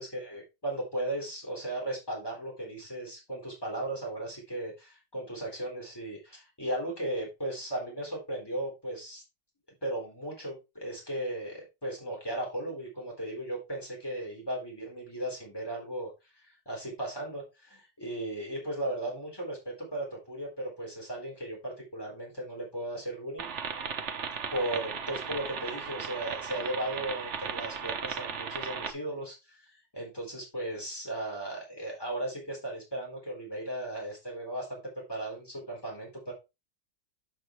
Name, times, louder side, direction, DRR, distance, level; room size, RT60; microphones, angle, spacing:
voice 1, 0.0-9.2 9.8-16.1 16.4-23.5 24.5-34.8 35.1-36.3, right 1 dB, 10° left, -1 dB, 4.1 m, -36 dB
sound 1, 23.4-28.9, right 6 dB, 50° right, 1.0 m, -36 dB
7.7 x 7.5 x 3.2 m, 0.25 s
omnidirectional pair, 2.0 m